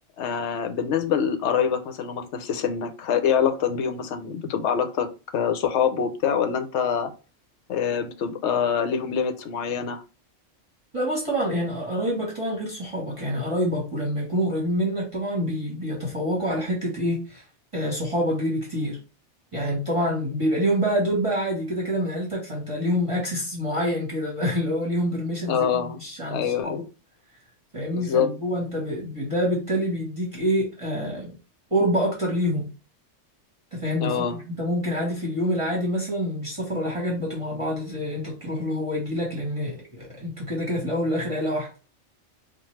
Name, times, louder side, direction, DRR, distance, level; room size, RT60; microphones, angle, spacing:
voice 1, 0.2-5.1 5.3-7.1 7.7-10.0 25.5-26.0 26.3-26.9 27.9-28.3 34.0-34.4, left 7 dB, 75° left, 0.9 m, -25 dB
voice 2, 10.9-17.4 17.7-19.0 19.5-26.8 27.7-31.3 31.7-32.7 33.7-34.3 34.6-41.7, equal, 25° right, 1.1 m, -26 dB
4.4 x 2.3 x 3.1 m
omnidirectional pair, 1.3 m